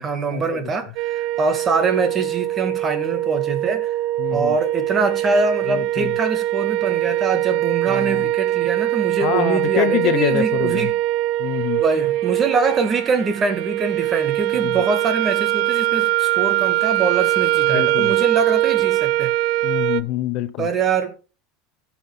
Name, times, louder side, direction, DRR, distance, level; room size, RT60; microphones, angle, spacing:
voice 1, 0.0-4.0 4.3-10.9 11.8-19.3 20.6-21.2, right 4 dB, 25° right, 1.9 m, -23 dB
sound 1, 1.0-20.0, right 15 dB, 60° right, 0.6 m, -22 dB
voice 2, 4.2-4.5 5.7-6.1 7.9-8.3 9.2-10.9 11.4-11.8 14.6-14.8 17.7-18.1 19.6-20.7, left 14 dB, 55° left, 0.6 m, -25 dB
16.5 x 5.8 x 3.3 m
supercardioid pair, 140°, 0 cm